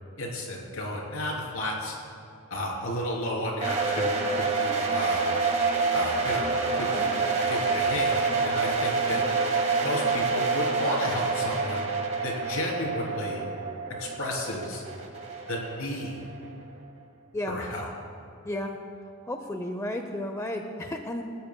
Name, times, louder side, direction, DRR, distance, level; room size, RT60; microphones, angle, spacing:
voice 1, 0.2-2.0 2.5-5.2 5.9-6.5 6.7-9.2 9.8-11.8 12.2-13.5 14.0-14.8 15.5-16.2 17.5-17.9, left 1 dB, 70° left, -2 dB, 3.5 m, -32 dB
sound 1, 3.6-16.5, right 4 dB, 30° right, 1.8 m, -27 dB
voice 2, 18.4-18.8 19.2-21.2, left 1 dB, 15° left, 4 dB, 0.6 m, -33 dB
28.5 x 13.5 x 2.3 m, 2.6 s
head